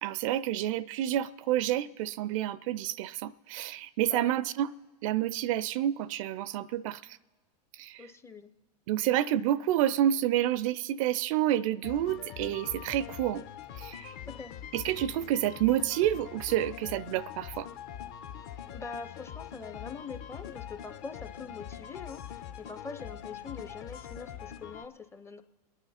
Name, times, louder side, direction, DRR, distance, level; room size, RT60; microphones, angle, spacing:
voice 1, 0.0-4.7 5.0-7.2 7.8-8.0 8.9-13.4 13.8-14.1 14.7-17.7, right 12 dB, 50° right, 0.4 m, -29 dB
voice 2, 4.0-4.3 8.0-8.5 14.3-14.5 18.7-25.4, left 4 dB, 10° left, 0.6 m, -43 dB
sound 1, 11.8-24.9, left 9 dB, 50° left, 1.0 m, -43 dB
29.0 x 9.9 x 4.2 m
hypercardioid pair, 115°, 21 cm